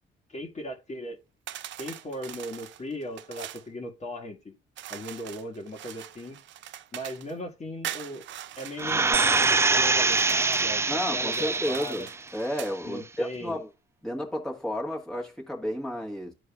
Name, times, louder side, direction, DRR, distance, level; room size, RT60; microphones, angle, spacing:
voice 1, 0.3-1.2 1.8-4.5 4.9-6.4 6.9-8.2 8.6-10.8 11.1-12.1 12.8-13.6, equal, 35° left, 1.6 m, -37 dB
sound 1, 1.5-3.7 4.8-7.3 7.8-9.6 10.0-10.7 11.2-12.8, right 12 dB, 70° right, 0.5 m, -42 dB
sound 2, 8.8-12.2 12.6-12.7, right 3 dB, 15° right, 0.3 m, -24 dB
sound 3, 9.1-11.1, right 8 dB, 50° right, 0.9 m, -37 dB
voice 2, 10.9-12.1 12.3-13.7 14.0-16.3, equal, 5° left, 1.5 m, -32 dB
13.0 x 4.6 x 2.3 m
cardioid pair, 90°, 20 cm